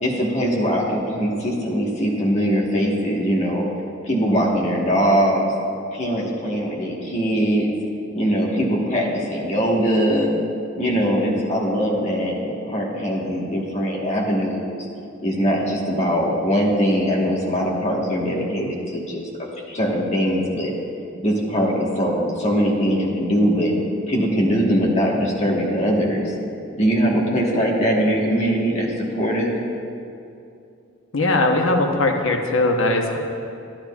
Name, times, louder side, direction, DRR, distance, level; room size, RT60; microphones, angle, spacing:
voice 1, 0.0-3.6 4.0-5.5 5.9-7.7 8.1-10.3 10.7-14.9 15.2-19.2 19.7-20.7 21.2-23.7 24.1-26.3 26.8-29.6, equal, 35° left, -3 dB, 1.3 m, -21 dB
voice 2, 31.1-33.2, left 2 dB, 80° left, 2 dB, 0.9 m, -19 dB
11.5 x 10.5 x 2.4 m, 2.6 s
head